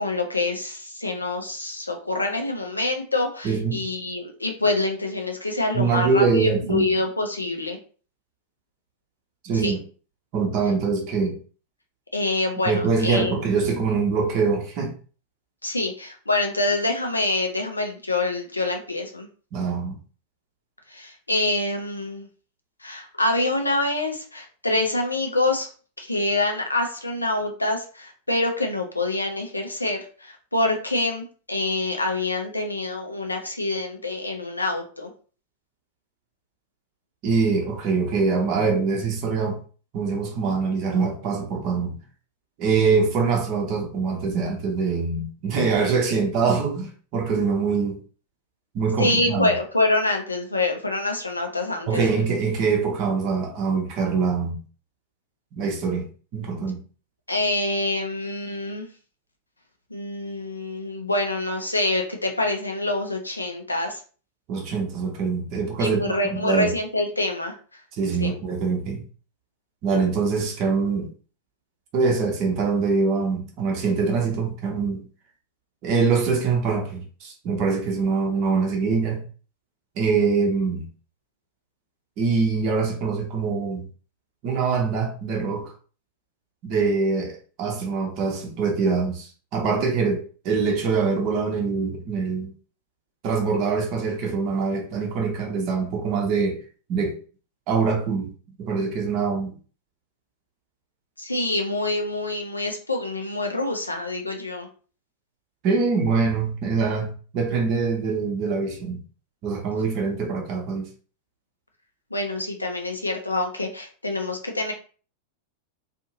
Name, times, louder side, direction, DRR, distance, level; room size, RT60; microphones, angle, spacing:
voice 1, 0.0-7.8 9.6-9.8 12.1-13.4 15.6-19.3 20.9-22.3 22.8-25.7 26.0-35.1 49.0-52.0 57.3-58.9 59.9-64.0 65.8-67.5 68.2-68.3 101.2-104.7 112.1-114.7, left 2 dB, 85° left, 0.6 m, -26 dB
voice 2, 3.4-3.8 5.7-6.9 9.4-9.8 10.3-11.4 12.7-15.0 19.5-20.0 37.2-39.6 39.9-42.0 42.6-48.0 48.7-49.5 51.9-54.6 55.5-56.8 64.5-66.7 68.0-69.1 69.8-71.1 71.9-75.0 75.8-79.2 80.0-80.9 82.2-83.9 84.4-85.7 86.6-92.5 93.2-96.6 96.9-97.2 97.7-98.3 98.6-99.6 105.6-109.0 109.4-110.9, right 4 dB, 40° right, 0.7 m, -24 dB
2.6 x 2.5 x 2.7 m
figure-of-eight pair, 90°, 0 cm